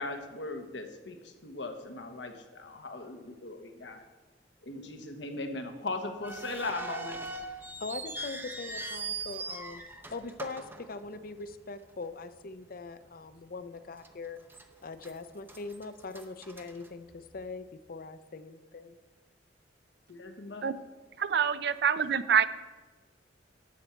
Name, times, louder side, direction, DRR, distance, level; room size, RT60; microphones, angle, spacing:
voice 1, 0.0-4.0 4.6-7.2 20.1-20.7, left 2 dB, 80° left, 5 dB, 1.2 m, -39 dB
sound 1, 6.2-11.5 11.8-11.9 12.7-12.9 13.3-13.4 14.0-14.6 15.0-17.5, right 3 dB, 10° right, 0.7 m, -41 dB
voice 2, 7.8-14.4 14.8-18.9, left 3 dB, 50° left, 12 dB, 0.6 m, -42 dB
voice 3, 21.2-22.5, right 7 dB, 65° right, 14 dB, 0.5 m, -26 dB
12.5 x 4.5 x 8.2 m, 1.3 s
head